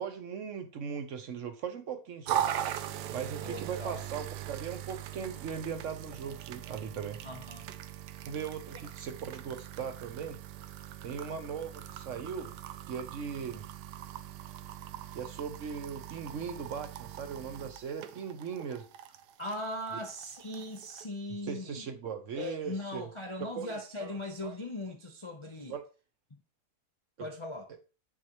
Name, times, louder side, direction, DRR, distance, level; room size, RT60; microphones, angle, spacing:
voice 1, 0.0-2.5 3.1-7.2 8.3-10.4 11.0-12.6 12.9-13.7 15.1-18.9 21.4-23.1 23.4-24.6 25.7-25.8 27.2-27.3, right 6 dB, 60° right, 1.0 m, -39 dB
sound 1, 2.3-21.1, right 11 dB, 85° right, 1.2 m, -40 dB
voice 2, 3.4-4.1 7.2-7.7 19.4-21.9 22.4-25.7 26.3-26.4 27.2-27.7, left 1 dB, 40° left, 0.4 m, -39 dB
6.4 x 6.3 x 2.9 m
omnidirectional pair, 1.7 m